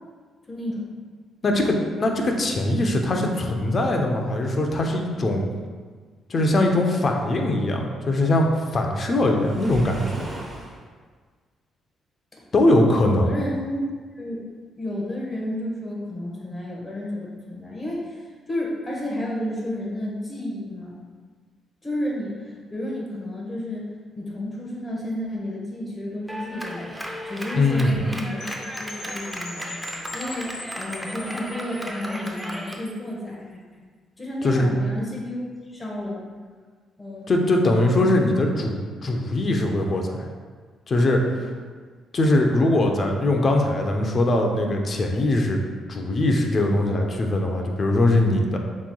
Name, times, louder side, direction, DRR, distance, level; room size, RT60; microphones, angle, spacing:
voice 1, 0.5-0.9 12.3-12.4 12.9-13.9 14.1-14.4 14.8-18.2 18.5-20.9 21.8-23.9 24.2-27.0 27.2-28.4 28.8-33.8 34.2-36.2 37.0-37.4, left 1 dB, 20° left, -4 dB, 1.3 m, -31 dB
voice 2, 1.4-5.4 6.3-10.3 12.5-13.3 27.5-28.0 34.4-34.7 37.3-40.3 40.9-41.5 42.1-45.6 45.9-48.6, left 1 dB, 40° left, 2 dB, 0.7 m, -21 dB
Waves surf, 9.3-10.8, right 1 dB, 30° right, 1.1 m, -37 dB
Clapping, 26.3-32.8, equal, 5° right, 0.6 m, -35 dB
Percussion / Wind chime, 28.4-33.1, left 2 dB, 85° left, 1.0 m, -41 dB
7.1 x 3.1 x 2.3 m, 1.5 s
cardioid pair, 90°, 0 cm